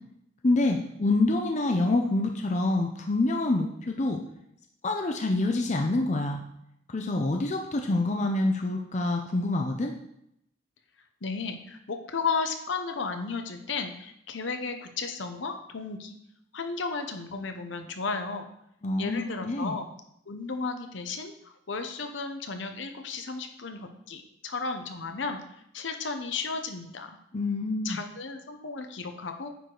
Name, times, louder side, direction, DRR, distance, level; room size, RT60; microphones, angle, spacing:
voice 1, 0.4-4.2 4.8-6.4 6.9-9.9 18.8-19.7 27.3-28.0, left 2 dB, 35° left, 3 dB, 0.6 m, -26 dB
voice 2, 11.2-16.2 16.5-18.5 19.0-19.9 20.3-27.1 27.8-29.5, left 4 dB, 65° left, 6 dB, 0.8 m, -34 dB
9.3 x 4.7 x 3.9 m, 0.76 s
head